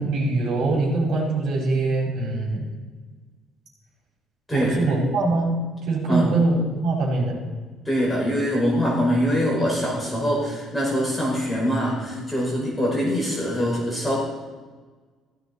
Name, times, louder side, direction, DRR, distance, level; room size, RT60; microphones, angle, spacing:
voice 1, 0.0-2.7 4.5-5.5 5.9-7.4, right 3 dB, 65° right, -3 dB, 5.1 m, -23 dB
voice 2, 4.5-4.9 6.1-6.3 7.8-14.2, equal, 5° left, -5 dB, 5.1 m, -23 dB
16.5 x 14.5 x 4.2 m, 1.4 s
cardioid pair, 135°, 0 cm